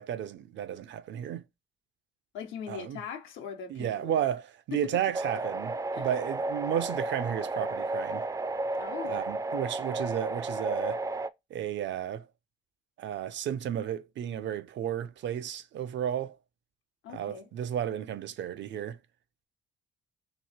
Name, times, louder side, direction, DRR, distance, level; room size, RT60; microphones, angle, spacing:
voice 1, 0.0-1.4 2.7-3.0 3.7-8.3 9.0-11.0 11.5-12.3 13.0-16.4 17.1-19.0, right 10 dB, 65° right, 0.6 m, -33 dB
voice 2, 2.3-4.2 4.7-5.0 5.9-6.1 8.8-9.2 17.0-17.5, left 8 dB, 85° left, 1.0 m, -40 dB
sound 1, 5.1-11.3, right 2 dB, 15° right, 0.4 m, -33 dB
3.1 x 2.8 x 4.2 m
cardioid pair, 90°, 20 cm